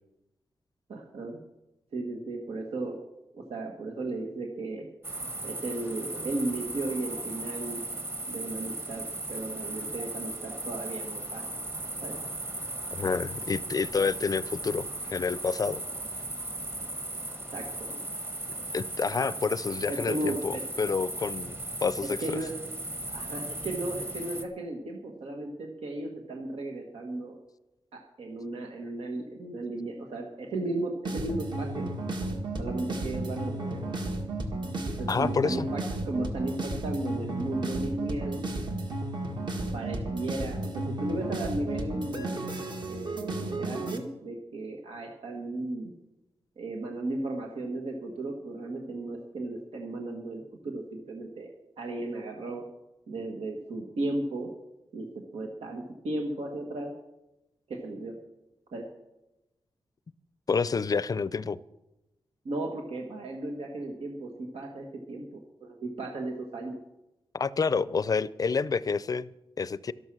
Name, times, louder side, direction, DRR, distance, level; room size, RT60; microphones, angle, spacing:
voice 1, 0.9-1.4 1.9-3.0 3.3-4.9 5.4-7.8 8.3-11.4 12.0-12.2 17.5-18.0 19.9-20.6 22.2-22.6 23.1-27.3 27.9-31.9 32.6-33.8 34.9-38.5 39.7-42.6 42.8-45.9 46.6-51.5 51.8-52.6 53.1-54.5 54.9-56.9 57.7-58.2 58.7-58.9 62.4-66.8, right 2 dB, 90° right, 1 dB, 1.6 m, -35 dB
sound 1, 5.0-24.4, right 2 dB, 25° right, 1.3 m, -37 dB
voice 2, 12.9-15.8 18.7-22.2 35.1-35.7 60.5-61.6 67.3-69.3 69.6-69.9, left 5 dB, 40° left, 18 dB, 0.5 m, -28 dB
sound 2, 31.0-44.0, right 2 dB, 50° right, 1.8 m, -33 dB
13.0 x 12.0 x 6.2 m, 0.94 s
wide cardioid pair, 140°, 10 cm